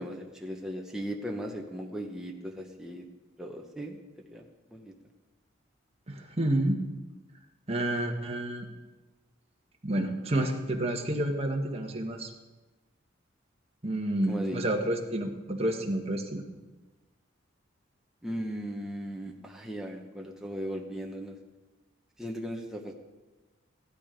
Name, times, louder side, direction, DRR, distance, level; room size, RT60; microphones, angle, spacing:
voice 1, 0.0-3.1 3.4-4.0 4.3-4.9 14.3-14.6 18.2-21.4 22.2-22.9, equal, 5° right, 0 dB, 1.0 m, -37 dB
voice 2, 6.1-6.8 7.7-8.7 9.8-12.3 13.8-16.4, right 1 dB, 30° right, 1 dB, 1.5 m, -29 dB
15.0 x 12.0 x 5.1 m, 1.2 s
head